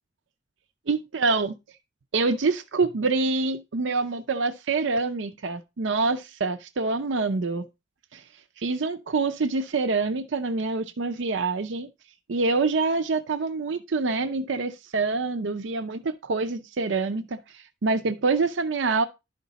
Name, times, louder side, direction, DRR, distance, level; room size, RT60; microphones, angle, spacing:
voice 1, 0.9-1.5 2.1-7.7 8.1-8.2 8.6-11.9 12.3-19.0, right 3 dB, 70° right, 0.6 m, -26 dB
11.5 x 5.1 x 4.1 m
head